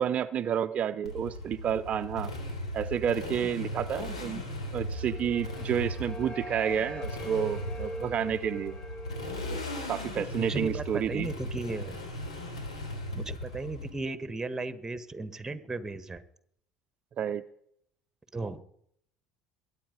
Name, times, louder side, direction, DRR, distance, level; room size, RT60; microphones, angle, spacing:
voice 1, 0.0-2.3 2.7-4.4 4.7-8.8 9.5-9.6 9.9-11.3 17.2-17.4, right 8 dB, 40° right, 13 dB, 0.6 m, -30 dB
Motorcycle, 1.0-13.9, left 1 dB, 80° left, 3.2 m, -37 dB
sound 1, 4.5-11.5, left 1 dB, 30° left, 1.5 m, -43 dB
voice 2, 10.4-12.0 13.1-16.2 18.3-18.6, right 3 dB, 15° right, 14 dB, 1.4 m, -35 dB
21.5 x 8.9 x 5.2 m, 0.68 s
figure-of-eight pair, 65°, 3 cm